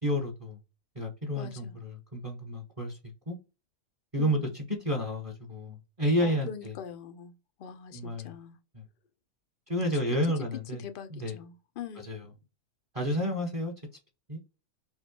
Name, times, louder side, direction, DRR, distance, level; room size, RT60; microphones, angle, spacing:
voice 1, 0.0-0.6 0.9-3.0 3.3-3.4 4.1-6.7 7.9-8.3 8.7-8.8 9.7-10.8 11.1-11.4 12.0-12.2 12.9-13.7 14.3-14.4, equal, 30° right, 0.8 m, -30 dB
voice 2, 1.4-1.8 4.2-4.7 6.2-8.6 10.1-10.2 10.7-12.1, left 7 dB, 75° left, 0.4 m, -43 dB
5.6 x 2.1 x 2.8 m
omnidirectional pair, 1.5 m